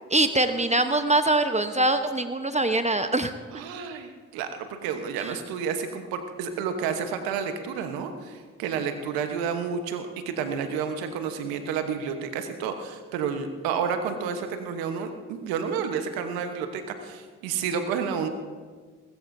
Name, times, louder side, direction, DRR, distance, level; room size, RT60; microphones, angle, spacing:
voice 1, 0.1-3.3 5.2-5.3, right 2 dB, 20° right, 8 dB, 1.0 m, -23 dB
voice 2, 3.5-18.3, right 6 dB, 85° right, 7 dB, 1.2 m, -30 dB
20.0 x 15.5 x 2.7 m, 1.5 s
hypercardioid pair, 45°, 35 cm